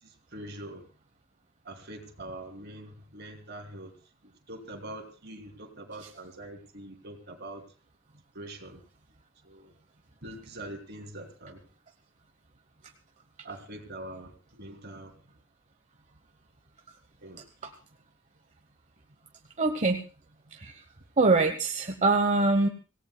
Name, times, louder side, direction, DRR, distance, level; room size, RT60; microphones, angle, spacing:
voice 1, 0.0-0.8 1.6-3.9 4.5-7.6 8.3-8.8 9.4-9.7 10.2-11.6 13.4-15.2 17.2-17.4, right 1 dB, 55° right, 4 dB, 2.9 m, -43 dB
voice 2, 19.6-20.0 20.5-20.8 21.2-22.7, right 3 dB, 35° right, 5 dB, 1.1 m, -24 dB
25.5 x 17.0 x 2.3 m, 0.34 s
head